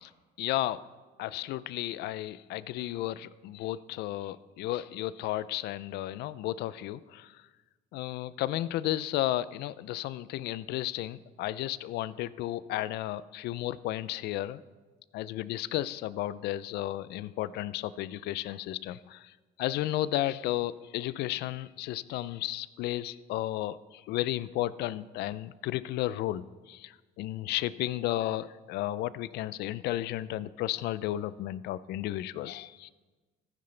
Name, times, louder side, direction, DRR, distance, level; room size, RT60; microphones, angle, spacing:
voice 1, 0.4-0.8 1.2-7.3 7.9-14.6 15.1-19.3 19.6-32.9, left 14 dB, 75° left, 18 dB, 0.4 m, -33 dB
14.5 x 9.6 x 3.3 m, 1.3 s
cardioid pair, 110°, 17 cm